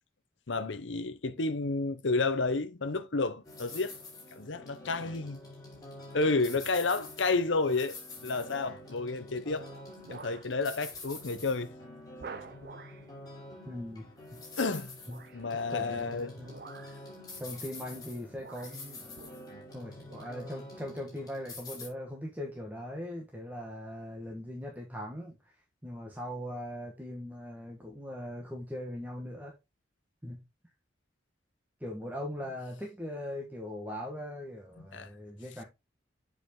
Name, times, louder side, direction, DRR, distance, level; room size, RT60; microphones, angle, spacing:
voice 1, 0.5-4.0 4.3-5.4 6.1-9.7 10.1-11.7 14.6-15.0 15.3-16.3 34.9-35.1, left 3 dB, 75° left, 0.9 m, -31 dB
sound 1, 3.4-21.9, left 2 dB, 20° left, 3.3 m, -47 dB
sound 2, 7.7-8.1 8.6-9.0 9.5-10.5 10.9-11.1 11.5-11.6 12.2-13.1 15.0-15.5 16.4-17.1 18.0-18.1 18.4-19.7 20.0-20.4 20.9-21.0, right 5 dB, 50° right, 0.6 m, -49 dB
voice 2, 13.6-14.4 15.1-15.4 15.7-16.6 17.4-19.2 19.7-25.6 25.8-29.5 30.2-30.4 31.8-35.6, left 1 dB, 10° right, 1.3 m, -40 dB
7.8 x 4.9 x 3.7 m
head